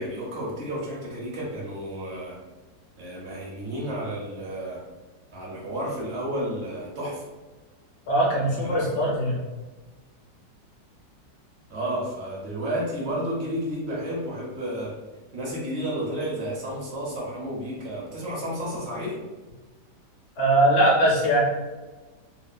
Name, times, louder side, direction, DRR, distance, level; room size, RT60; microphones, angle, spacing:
voice 1, 0.0-2.4 3.0-4.8 5.3-7.2 8.6-8.9 11.7-15.0 15.3-19.2, equal, 50° right, -4 dB, 0.8 m, -31 dB
voice 2, 8.1-9.4 20.4-21.4, right 1 dB, 55° left, -3 dB, 0.8 m, -21 dB
3.1 x 2.3 x 2.4 m, 1.2 s
omnidirectional pair, 1.9 m